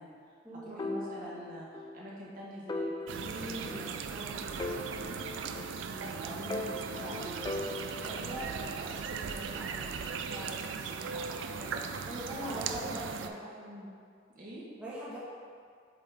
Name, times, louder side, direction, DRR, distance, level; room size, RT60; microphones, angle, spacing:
voice 1, 0.0-5.5 5.9-7.5 7.9-12.1 12.4-14.0 14.3-14.7, equal, 45° right, -6 dB, 1.2 m, -45 dB
sound 1, 0.8-2.0 2.2-2.3 2.7-4.2 4.6-6.0 6.5-8.3, left 2 dB, 20° left, 0.3 m, -39 dB
sound 2, 3.1-13.3, right 6 dB, 75° right, 0.3 m, -38 dB
voice 2, 12.1-13.3 14.8-15.2, equal, 5° right, -9 dB, 0.9 m, -40 dB
7.5 x 3.7 x 3.4 m, 2.2 s
head